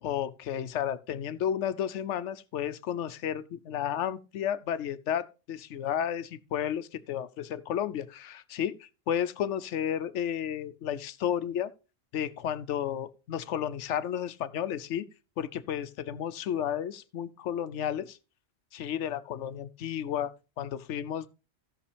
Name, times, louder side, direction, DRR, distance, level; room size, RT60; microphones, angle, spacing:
voice 1, 0.0-11.7 12.1-15.0 15.4-18.2 18.7-21.3, left 9 dB, 85° left, 1.0 m, -32 dB
16.0 x 6.0 x 3.3 m
omnidirectional pair, 1.2 m